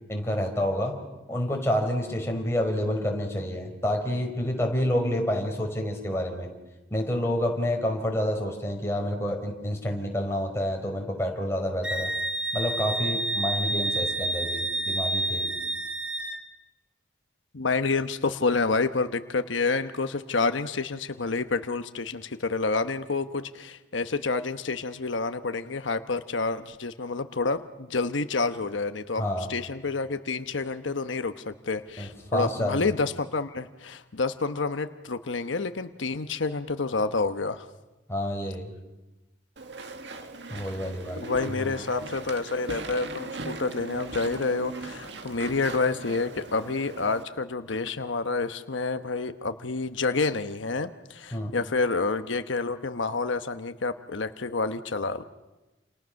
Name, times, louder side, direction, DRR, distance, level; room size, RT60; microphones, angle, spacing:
voice 1, 0.1-0.9 1.3-6.5 6.9-12.1 12.5-15.5 29.2-29.5 32.0-32.9 38.1-38.7 40.5-41.2 41.4-41.7 51.3-51.5, equal, 15° left, 1 dB, 4.5 m, -28 dB
Wind instrument woodwind instrument, 11.8-16.4, right 2 dB, 5° right, 1.6 m, -29 dB
voice 2, 17.5-37.7 41.2-55.2, left 3 dB, 90° left, 9 dB, 1.1 m, -28 dB
Walk footsteps / Chatter / Squeak, 39.6-47.2, right 3 dB, 70° right, 1.9 m, -39 dB
29.0 x 28.5 x 6.5 m, 1.1 s
head